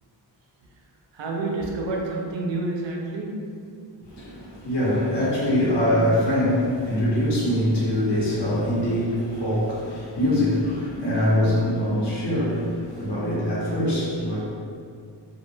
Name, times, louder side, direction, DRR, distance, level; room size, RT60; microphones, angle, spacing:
voice 1, 1.1-3.6, right 2 dB, 80° right, -1 dB, 0.5 m, -29 dB
voice 2, 4.0-14.4, left 1 dB, 70° left, -8 dB, 0.9 m, -23 dB
2.2 x 2.2 x 3.1 m, 2.3 s
wide cardioid pair, 85°, 44 cm